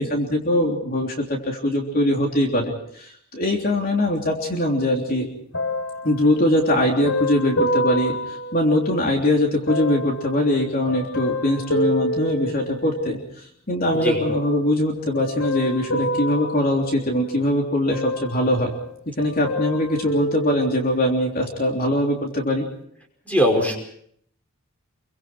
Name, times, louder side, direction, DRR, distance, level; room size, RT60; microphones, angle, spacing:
voice 1, 0.0-5.3 6.0-18.7 19.2-22.7, left 1 dB, 45° left, 0 dB, 3.4 m, -22 dB
sound 1, 5.5-9.1 9.7-13.2 13.9-14.5 15.1-17.5 17.9-18.9 19.2-21.2 21.9-22.0, left 1 dB, 90° left, 4.1 m, -28 dB
voice 2, 23.3-23.8, equal, 5° left, 2 dB, 5.3 m, -20 dB
28.0 x 23.5 x 4.5 m, 0.67 s
head